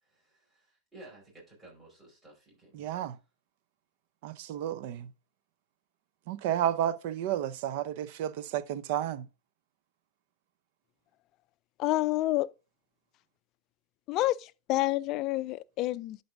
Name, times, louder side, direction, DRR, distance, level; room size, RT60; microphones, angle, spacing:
voice 1, 0.0-3.0, right 2 dB, 15° right, 4.9 m, -54 dB
voice 2, 2.7-3.1 4.2-5.1 6.3-9.2, right 11 dB, 60° right, 0.6 m, -31 dB
voice 3, 11.8-12.5 14.1-14.4 14.7-16.2, left 17 dB, 40° left, 0.4 m, -28 dB
11.5 x 4.0 x 3.6 m
hypercardioid pair, 120°, 0 cm